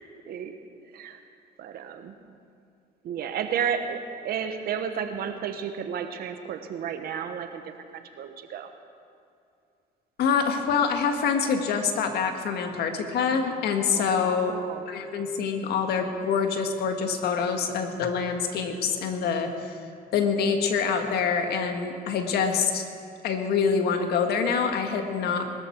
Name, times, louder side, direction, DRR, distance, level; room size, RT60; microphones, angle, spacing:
voice 1, 1.6-2.2 3.0-7.6 7.9-8.7 13.9-14.9, right 7 dB, 65° right, 7 dB, 1.3 m, -32 dB
voice 2, 10.2-14.5 14.9-19.7 20.1-22.8 23.2-25.5, left 6 dB, 70° left, 5 dB, 1.7 m, -25 dB
21.5 x 13.5 x 4.6 m, 2.4 s
cardioid pair, 110°, 17 cm